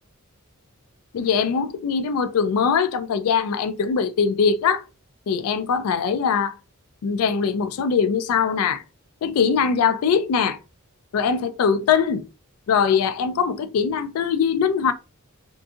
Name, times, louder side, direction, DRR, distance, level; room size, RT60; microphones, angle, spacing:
voice 1, 1.1-4.8 5.3-6.5 7.0-8.8 9.2-10.6 11.1-12.2 12.7-14.9, left 6 dB, 75° left, 0.3 m, -21 dB
2.6 x 2.5 x 2.4 m
head